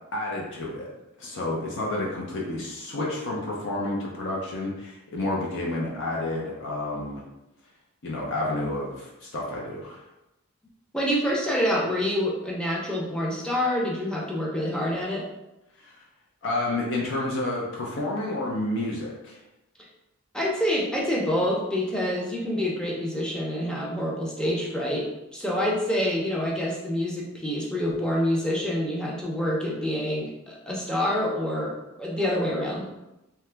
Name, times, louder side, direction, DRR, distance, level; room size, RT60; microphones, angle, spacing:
voice 1, 0.1-0.9 1.2-7.2 8.0-10.0 15.8-16.0 16.4-19.4, left 2 dB, 60° left, -3 dB, 0.5 m, -30 dB
voice 2, 10.9-15.2 20.3-32.9, left 1 dB, 5° left, -4 dB, 0.5 m, -27 dB
2.8 x 2.3 x 3.3 m, 0.94 s
head